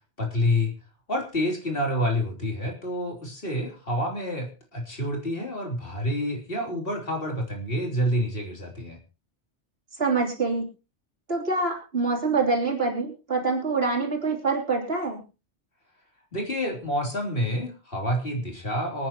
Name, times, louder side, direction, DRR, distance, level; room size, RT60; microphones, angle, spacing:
voice 1, 0.2-0.7 1.1-9.0 16.3-19.1, equal, 55° left, 1 dB, 3.8 m, -28 dB
voice 2, 10.0-10.7 11.3-15.2, right 3 dB, 60° right, 0 dB, 3.6 m, -25 dB
25.0 x 9.7 x 3.0 m, 0.31 s
omnidirectional pair, 1.2 m